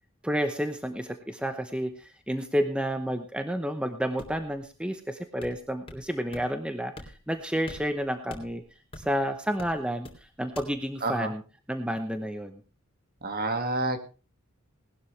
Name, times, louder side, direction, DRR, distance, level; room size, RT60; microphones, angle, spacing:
voice 1, 0.2-8.6 9.0-11.4 11.7-12.6, equal, 5° right, 7 dB, 0.9 m, -30 dB
sound 1, 4.2-4.6 5.4-6.1 6.3-6.5 7.0-7.3 7.7-9.2 9.6-10.2 10.5-10.7, left 1 dB, 25° left, 2.9 m, -44 dB
voice 2, 13.2-14.0, right 2 dB, 45° right, 7 dB, 2.0 m, -28 dB
19.0 x 12.0 x 3.3 m, 0.34 s
head